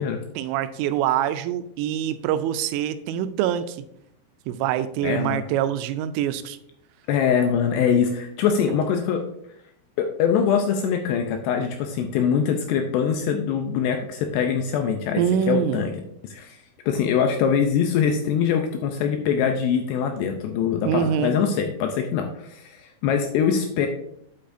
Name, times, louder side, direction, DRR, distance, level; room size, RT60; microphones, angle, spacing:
voice 1, 0.4-3.8 4.5-6.6 15.2-15.9 20.9-21.4, right 10 dB, 85° right, 12 dB, 3.1 m, -24 dB
voice 2, 5.0-5.5 7.1-9.2 10.0-15.9 16.2-16.6 16.9-23.9, left 7 dB, 85° left, 5 dB, 2.4 m, -23 dB
8.4 x 8.2 x 2.6 m, 0.72 s
omnidirectional pair, 5.6 m